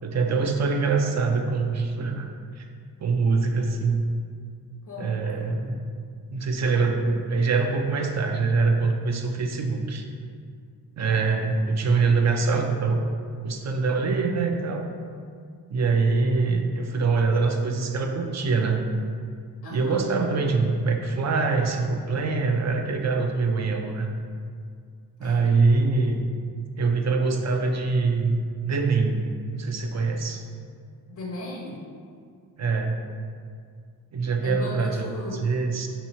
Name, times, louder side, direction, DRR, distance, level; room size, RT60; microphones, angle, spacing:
voice 1, 0.0-2.3 2.6-2.7 3.0-4.0 5.0-5.8 6.3-10.0 11.0-13.0 13.4-14.9 15.7-18.9 19.7-24.1 25.2-26.2 26.8-29.2 29.5-30.4 32.6-33.0 34.1-35.1 35.4-35.9, right 4 dB, 40° right, 3 dB, 0.5 m, -24 dB
voice 2, 4.8-5.5 19.6-20.0 25.2-25.4 31.1-31.8 34.4-35.5, left 2 dB, 50° left, -4 dB, 0.9 m, -36 dB
3.1 x 2.7 x 4.1 m, 2.2 s
supercardioid pair, 40°, 42 cm